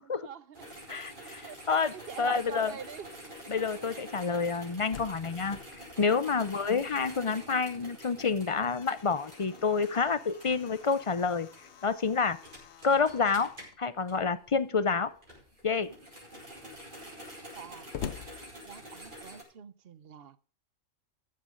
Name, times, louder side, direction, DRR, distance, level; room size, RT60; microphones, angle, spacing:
voice 1, 0.2-0.7 1.4-3.1 3.9-4.0 6.4-6.7 17.5-17.9 18.7-20.4, right 8 dB, 55° right, 0.9 m, -44 dB
sound 1, 0.5-14.6 15.1-19.4, equal, 40° right, 5.0 m, -48 dB
voice 2, 0.9-2.7 3.5-5.6 6.0-11.5 11.8-12.4 12.8-13.5 13.8-15.1 15.6-15.9, left 5 dB, 40° left, 0.4 m, -28 dB
Slam, 4.8-7.3 7.6-7.7 8.2-13.8 14.7-15.3 15.8-15.9 16.1-19.2, left 8 dB, 65° left, 1.0 m, -48 dB
14.0 x 7.8 x 5.1 m
omnidirectional pair, 1.3 m